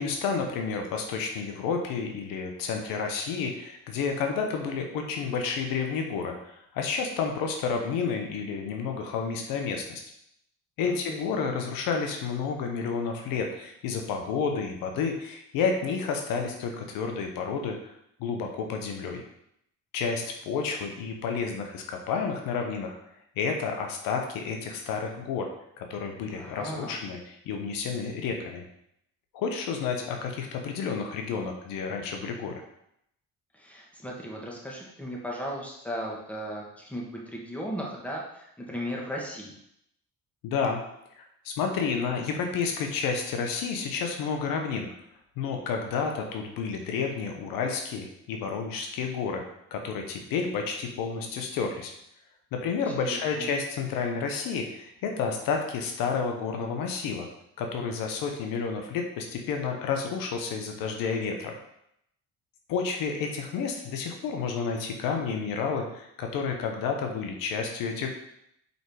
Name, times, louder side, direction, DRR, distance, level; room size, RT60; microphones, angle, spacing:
voice 1, 0.0-10.0 10.8-17.8 18.2-19.2 19.9-23.0 23.4-25.5 25.8-28.6 29.3-32.6 40.4-40.8 41.2-44.9 45.4-49.4 49.7-51.9 52.5-57.3 57.6-61.5 62.7-68.1, left 5 dB, 85° left, 3 dB, 1.0 m, -30 dB
voice 2, 10.9-11.3 26.3-27.0 33.5-39.5 52.9-53.5, equal, 5° left, -3 dB, 2.1 m, -36 dB
5.4 x 4.7 x 4.7 m, 0.77 s
supercardioid pair, 70°, 33 cm